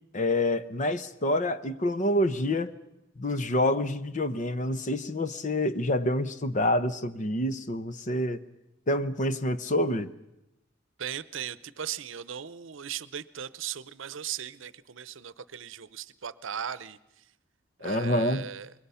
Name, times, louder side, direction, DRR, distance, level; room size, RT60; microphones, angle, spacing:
voice 1, 0.1-2.7 3.2-8.4 8.9-10.1 17.8-18.4, left 1 dB, 40° left, 0.9 m, -27 dB
voice 2, 11.0-17.3 17.8-18.7, right 8 dB, 80° right, 0.7 m, -38 dB
26.0 x 21.5 x 5.7 m
head